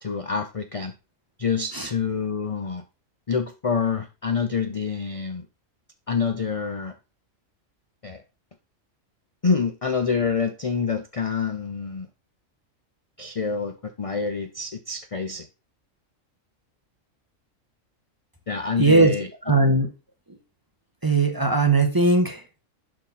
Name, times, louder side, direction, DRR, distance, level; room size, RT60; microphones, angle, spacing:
voice 1, 0.0-0.9 1.4-2.8 3.3-5.5 6.1-7.0 8.0-8.2 9.4-12.1 13.2-15.5 18.5-19.3, left 5 dB, 40° left, 0.5 m, -27 dB
voice 2, 18.8-19.1 19.4-19.9 20.3-20.4 21.0-22.6, right 3 dB, 15° right, 1.2 m, -19 dB
11.0 x 4.3 x 4.2 m
omnidirectional pair, 1.4 m